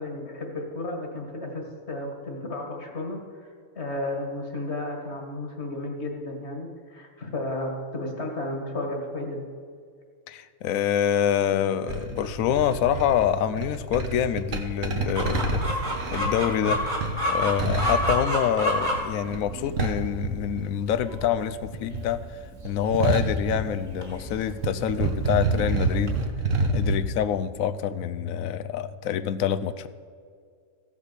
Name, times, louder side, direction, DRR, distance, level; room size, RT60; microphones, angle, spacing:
voice 1, 0.0-3.5 3.8-9.4, left 2 dB, 55° left, 2 dB, 2.0 m, -33 dB
voice 2, 10.3-15.8 16.1-16.8 17.3-22.2 22.6-26.2 26.7-29.9, left 9 dB, 80° left, 13 dB, 1.0 m, -26 dB
sound 1, 11.9-21.2 21.4-24.3 24.5-27.0, right 3 dB, 75° right, 1.5 m, -28 dB
Chicken rooster, 15.2-26.3, equal, 45° right, 2.5 m, -31 dB
15.5 x 5.4 x 6.7 m, 2.2 s
omnidirectional pair, 1.4 m